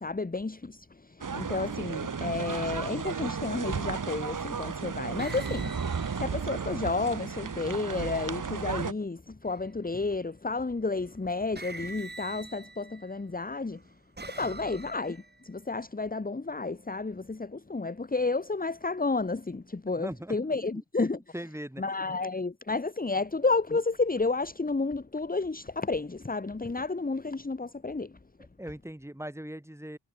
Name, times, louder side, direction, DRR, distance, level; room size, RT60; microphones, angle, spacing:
voice 1, 0.0-5.8 6.2-13.8 14.2-21.2 21.8-28.2, left 3 dB, 20° left, 1.4 m, -31 dB
sound 1, 1.2-8.9, right 5 dB, 55° right, 2.1 m, -34 dB
sound 2, 5.2-7.2 9.4-10.0 11.0-11.1 11.5-13.2 13.8-15.5, right 3 dB, 25° right, 2.0 m, -45 dB
voice 2, 20.0-20.8 21.3-21.8 28.6-30.0, right 1 dB, 5° right, 4.2 m, -40 dB
wide cardioid pair, 75°, 39 cm